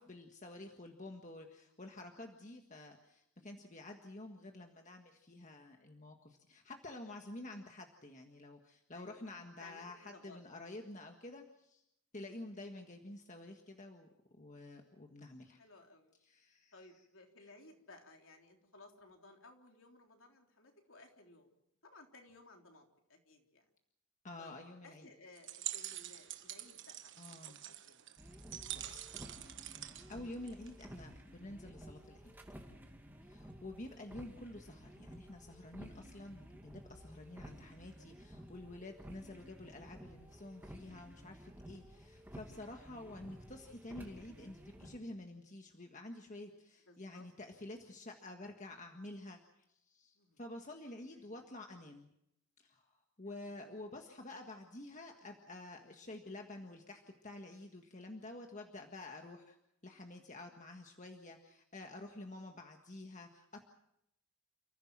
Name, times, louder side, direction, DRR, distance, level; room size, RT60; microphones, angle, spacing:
voice 1, 0.0-11.8 12.1-15.6 16.2-16.7 24.2-25.1 27.2-27.6 28.7-29.1 30.1-32.3 33.2-49.4 49.9-52.1 52.6-59.6 59.8-63.6, left 2 dB, 35° left, 3 dB, 1.6 m, -50 dB
voice 2, 8.9-9.3 9.6-10.4 15.6-16.1 16.7-21.5 21.8-23.7 24.4-27.1 27.4-28.0 33.3-33.6 46.9-47.3 50.2-50.4 51.1-51.3 53.2-53.6, left 2 dB, 60° left, 2 dB, 3.6 m, -59 dB
sound 1, 25.4-31.0, right 12 dB, 55° right, 1.3 m, -46 dB
sound 2, 28.2-45.0, equal, 10° right, 2.2 m, -54 dB
29.5 x 15.5 x 7.5 m, 0.79 s
head